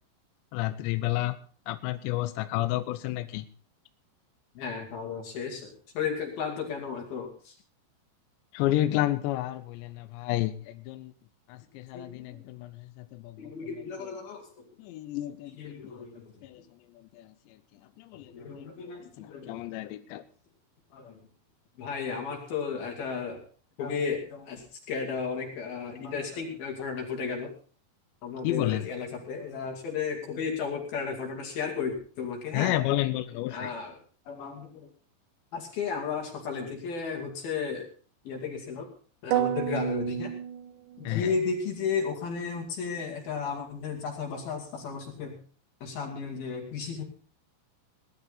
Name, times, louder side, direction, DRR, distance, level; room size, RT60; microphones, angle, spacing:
voice 1, 0.5-1.4 1.7-3.4 8.5-11.1 11.5-13.4 14.0-14.1 14.8-15.6 15.8-16.1 16.4-16.6 17.1-17.3 18.0-18.9 19.2-20.2 28.4-28.9 32.5-33.7 41.0-41.3, left 15 dB, 85° left, 11 dB, 3.0 m, -31 dB
voice 2, 4.6-7.5 11.9-12.4 13.4-14.5 15.5-16.3 18.3-19.6 20.9-21.2 21.8-23.4 23.8-27.5 28.2-32.7 33.5-34.0 34.3-34.9 35.5-37.9 38.3-38.9 39.2-40.3 41.0-45.4 45.8-47.1, left 5 dB, 60° left, 1 dB, 3.9 m, -34 dB
sound 1, 39.3-41.3, right 11 dB, 80° right, 3.3 m, -30 dB
19.0 x 11.5 x 4.0 m, 0.41 s
omnidirectional pair, 5.0 m